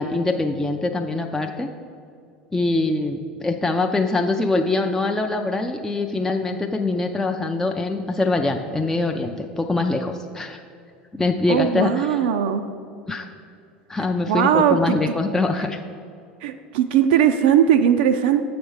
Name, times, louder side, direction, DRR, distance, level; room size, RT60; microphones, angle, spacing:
voice 1, 0.0-1.7 2.5-10.6 11.1-12.2 13.1-13.3 13.9-15.8, left 2 dB, 10° left, 4 dB, 0.4 m, -23 dB
voice 2, 11.5-12.7 14.3-14.9 16.4-18.4, right 9 dB, 60° right, 7 dB, 0.4 m, -19 dB
7.8 x 5.1 x 4.7 m, 2.4 s
figure-of-eight pair, 75°, 6 cm